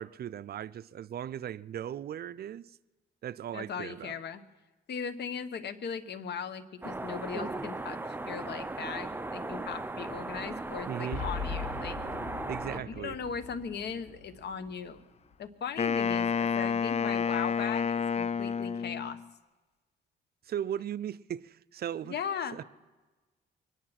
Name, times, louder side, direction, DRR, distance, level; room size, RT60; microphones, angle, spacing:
voice 1, 0.0-2.8 3.2-4.1 10.9-11.2 12.5-13.2 20.4-22.2 22.5-22.6, right 10 dB, 50° right, 0.5 m, -37 dB
voice 2, 3.5-4.4 4.9-8.0 8.3-12.0 12.7-15.0 15.4-19.2 22.0-22.6, left 7 dB, 60° left, 1.2 m, -38 dB
sound 1, 6.8-12.8, right 2 dB, 10° right, 0.6 m, -37 dB
Boom, 11.1-15.5, left 5 dB, 85° left, 2.8 m, -41 dB
Wind instrument woodwind instrument, 15.8-19.3, left 6 dB, 35° left, 0.4 m, -29 dB
23.5 x 10.0 x 5.9 m
cardioid pair, 90°, 20 cm